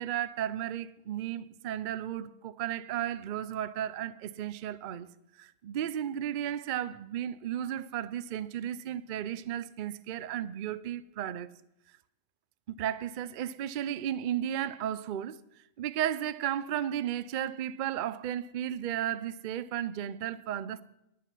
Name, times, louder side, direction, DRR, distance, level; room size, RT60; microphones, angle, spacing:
voice 1, 0.0-5.1 5.4-11.5 12.7-15.4 15.8-20.8, right 10 dB, 80° right, 0.4 m, -34 dB
11.0 x 9.8 x 6.1 m
omnidirectional pair, 1.5 m